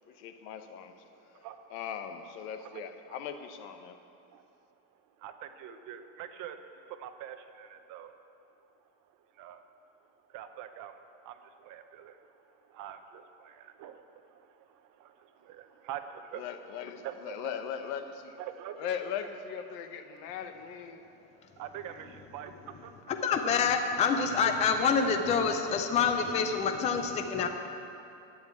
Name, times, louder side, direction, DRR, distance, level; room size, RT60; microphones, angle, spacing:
voice 1, 0.2-0.9 1.7-3.9 16.4-18.3 18.8-21.0, left 8 dB, 85° left, 8 dB, 1.3 m, -39 dB
voice 2, 1.0-1.8 2.7-3.4 4.1-4.5 4.9-8.2 9.1-9.6 10.0-17.7 18.4-18.9 20.0-20.2 20.8-22.9 24.1-24.2, right 9 dB, 45° right, 8 dB, 0.8 m, -46 dB
voice 3, 23.1-27.5, left 6 dB, 15° left, 6 dB, 0.4 m, -27 dB
11.5 x 9.6 x 8.4 m, 2.7 s
cardioid pair, 165°, 46 cm